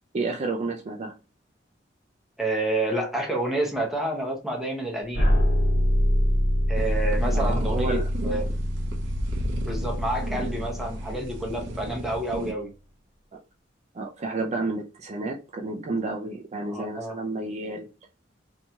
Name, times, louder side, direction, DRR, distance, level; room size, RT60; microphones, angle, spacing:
voice 1, 0.1-1.1 7.3-8.1 13.3-13.4 13.9-17.9, right 3 dB, 40° right, 0.4 m, -31 dB
voice 2, 2.4-5.3 6.7-8.5 9.7-12.7 16.7-17.2, right 1 dB, ahead, 0.7 m, -29 dB
sound 1, 5.1-12.1, equal, 65° left, 1.4 m, -25 dB
sound 2, 6.7-12.5, right 1 dB, 80° right, 0.6 m, -35 dB
2.9 x 2.6 x 2.2 m
head